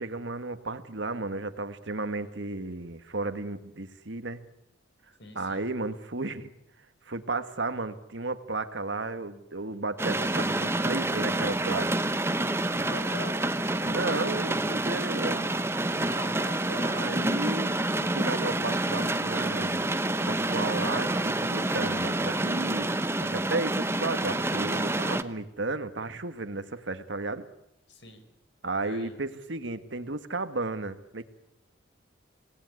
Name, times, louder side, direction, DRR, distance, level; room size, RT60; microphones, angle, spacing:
voice 1, 0.0-4.4 5.3-6.5 7.0-12.1 13.8-15.5 16.8-17.7 18.1-19.8 20.3-22.9 23.3-27.4 28.6-31.2, right 3 dB, 70° right, 10 dB, 1.7 m, -33 dB
voice 2, 5.2-5.7 12.9-13.6 13.9-14.7 15.9-16.9 27.9-28.2 28.8-29.1, left 1 dB, 65° left, 7 dB, 5.3 m, -43 dB
sound 1, 10.0-25.2, right 2 dB, 15° right, 0.9 m, -28 dB
27.0 x 19.0 x 9.7 m, 0.85 s
head